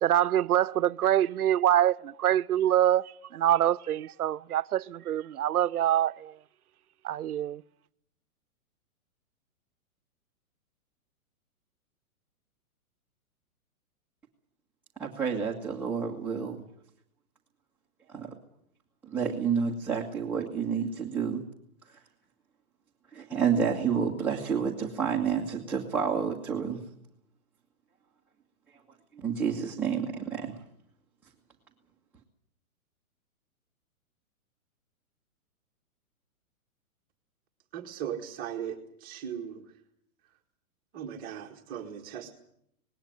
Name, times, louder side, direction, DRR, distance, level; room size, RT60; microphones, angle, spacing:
voice 1, 0.0-6.4 7.0-7.6, right 11 dB, 80° right, 0.8 m, -25 dB
voice 2, 15.0-16.6 18.1-18.3 19.0-21.4 23.1-26.8 29.2-30.6, right 6 dB, 5° right, 1.6 m, -29 dB
voice 3, 37.7-39.6 40.9-42.3, right 9 dB, 20° right, 1.8 m, -38 dB
19.5 x 17.5 x 9.3 m
hypercardioid pair, 160°, 44 cm